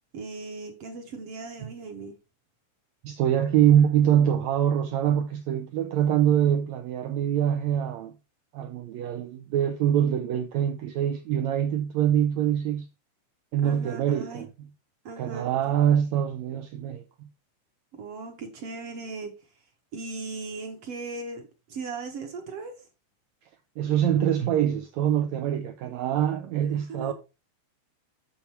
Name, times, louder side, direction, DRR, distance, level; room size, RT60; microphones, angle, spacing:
voice 1, 0.1-2.1 13.6-14.5 15.0-15.7 17.9-19.3 19.9-22.7 26.7-27.1, right 3 dB, 60° right, 1.6 m, -38 dB
voice 2, 3.0-8.1 8.5-12.9 13.5-14.5 15.2-17.3 23.8-27.1, right 10 dB, 90° right, 1.6 m, -24 dB
7.2 x 7.1 x 4.3 m
omnidirectional pair, 4.0 m